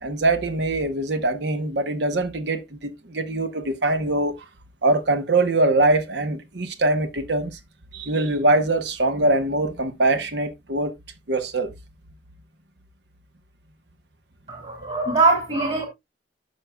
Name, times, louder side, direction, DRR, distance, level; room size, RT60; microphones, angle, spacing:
voice 1, 0.0-4.3 4.8-7.6 7.9-10.9 11.3-11.7, right 2 dB, 65° right, 1.0 m, -23 dB
voice 2, 14.5-15.9, right 3 dB, 35° right, 2.2 m, -22 dB
11.5 x 6.5 x 2.3 m
head